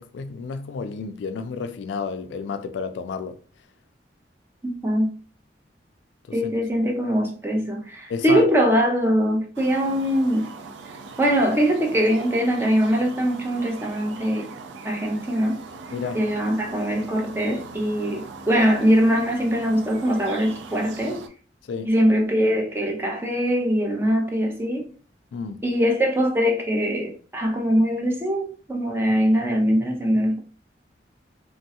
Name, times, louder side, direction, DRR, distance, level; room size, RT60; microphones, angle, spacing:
voice 1, 0.0-3.4 6.3-6.5 8.1-8.5 15.9-16.2 21.7-21.9 25.3-25.6, left 5 dB, 85° left, 0.3 m, -31 dB
voice 2, 4.6-5.1 6.3-10.5 11.2-14.6 14.8-15.6 16.1-21.2 21.8-24.9 25.6-30.4, equal, 15° right, 0.6 m, -22 dB
sound 1, 9.5-21.3, right 4 dB, 90° right, 0.4 m, -40 dB
3.1 x 2.2 x 2.8 m
head